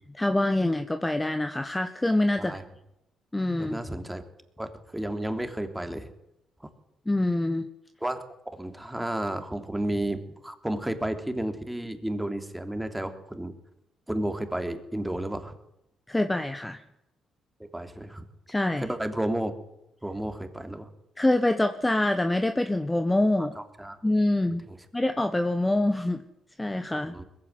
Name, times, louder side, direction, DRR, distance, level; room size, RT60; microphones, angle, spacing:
voice 1, 0.1-2.6 3.3-3.8 7.1-7.6 16.1-16.8 18.5-18.8 21.2-23.6 24.0-24.6 24.9-26.2 26.6-27.1, left 1 dB, 10° left, 8 dB, 1.4 m, -25 dB
voice 2, 3.6-4.2 4.6-6.1 8.0-8.2 8.5-13.5 14.1-15.5 17.6-18.2 18.8-19.5 20.0-20.9 23.6-24.0 24.7-24.8 26.9-27.2, right 1 dB, 10° right, 7 dB, 3.3 m, -32 dB
21.5 x 15.5 x 9.7 m, 0.83 s
cardioid pair, 90°, 0 cm